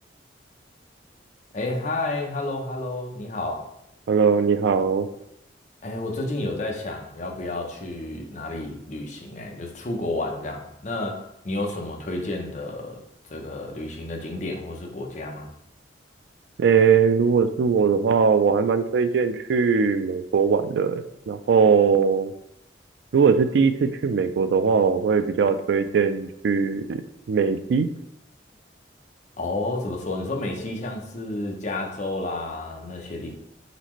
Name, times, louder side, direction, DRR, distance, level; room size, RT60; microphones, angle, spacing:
voice 1, 1.5-3.7 5.8-13.0 13.3-15.5 29.4-33.3, left 2 dB, 40° left, 1 dB, 0.7 m, -31 dB
voice 2, 4.1-5.1 16.6-22.3 23.1-27.0 27.3-27.9, right 5 dB, 70° right, 10 dB, 0.3 m, -20 dB
4.1 x 4.0 x 3.0 m, 0.77 s
head